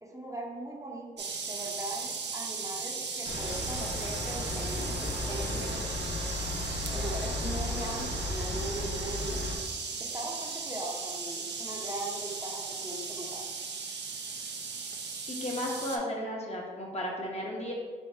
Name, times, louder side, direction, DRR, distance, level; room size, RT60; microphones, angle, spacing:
voice 1, 0.0-5.8 6.9-9.5 10.0-13.5, right 1 dB, 15° right, -2 dB, 0.7 m, -40 dB
sound 1, 1.2-16.0, right 5 dB, 65° right, 0.6 m, -37 dB
sound 2, 3.2-9.6, left 2 dB, 80° left, 0.9 m, -35 dB
voice 2, 15.3-17.7, left 1 dB, 35° left, -2 dB, 1.0 m, -34 dB
3.5 x 2.5 x 4.3 m, 1.5 s
cardioid pair, 55°, 19 cm